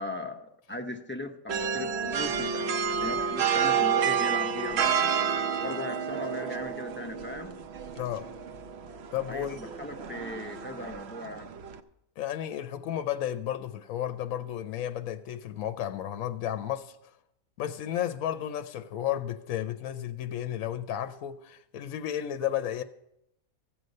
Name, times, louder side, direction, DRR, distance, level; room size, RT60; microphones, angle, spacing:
voice 1, 0.0-5.1 5.5-7.5 9.3-11.5, left 1 dB, 15° left, 0.4 m, -38 dB
sound 1, 1.5-11.8, right 7 dB, 60° right, 0.7 m, -30 dB
voice 2, 8.0-8.3 9.1-9.6 12.2-17.1 17.6-22.8, left 11 dB, 80° left, 1.0 m, -33 dB
14.0 x 8.0 x 5.3 m
omnidirectional pair, 1.5 m